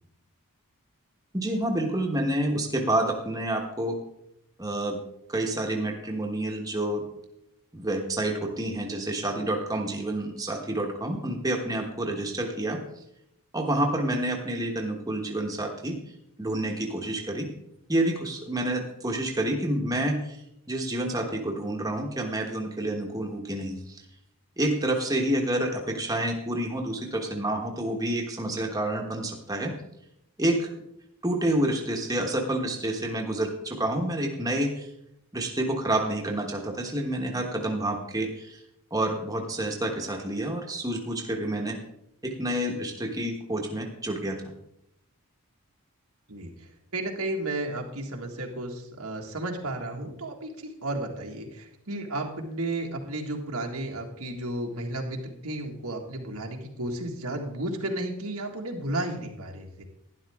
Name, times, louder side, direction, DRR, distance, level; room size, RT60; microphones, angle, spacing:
voice 1, 1.3-4.0 4.6-5.0 5.3-7.1 7.7-12.8 13.5-16.0 16.4-17.5 17.9-20.4 20.7-24.0 24.6-29.7 30.4-30.7 31.2-34.9 35.3-38.6 38.9-41.8 42.2-44.4, right 1 dB, 15° right, 0 dB, 1.2 m, -28 dB
voice 2, 46.3-59.8, right 1 dB, 85° right, 1 dB, 1.8 m, -33 dB
11.5 x 11.0 x 3.6 m, 0.80 s
head